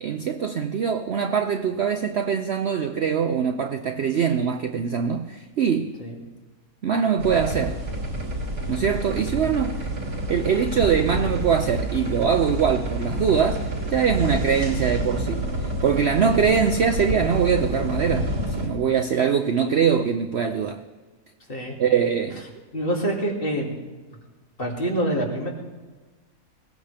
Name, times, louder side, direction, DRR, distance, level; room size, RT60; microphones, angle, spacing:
voice 1, 0.0-6.0 6.8-7.8 8.7-9.9 10.3-15.5 15.8-18.3 18.6-20.8 21.8-22.4, right 7 dB, 55° right, 7 dB, 0.7 m, -23 dB
sound 1, 7.2-18.7, right 1 dB, 85° right, 3.0 m, -28 dB
voice 2, 22.7-23.7 24.6-25.5, right 1 dB, 35° left, -2 dB, 2.9 m, -26 dB
21.0 x 17.5 x 3.4 m, 1.3 s
omnidirectional pair, 1.6 m